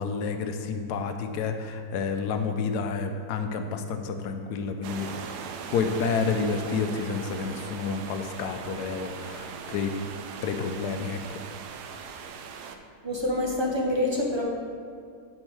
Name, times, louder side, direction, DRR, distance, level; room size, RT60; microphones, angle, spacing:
voice 1, 0.0-5.1 5.7-10.0 10.4-11.4, left 5 dB, 80° left, 6 dB, 1.2 m, -29 dB
sound 1, 4.8-12.8, right 6 dB, 80° right, 1.1 m, -39 dB
voice 2, 13.0-14.4, left 1 dB, 25° right, -2 dB, 0.5 m, -26 dB
8.7 x 4.4 x 4.6 m, 2.2 s
omnidirectional pair, 1.7 m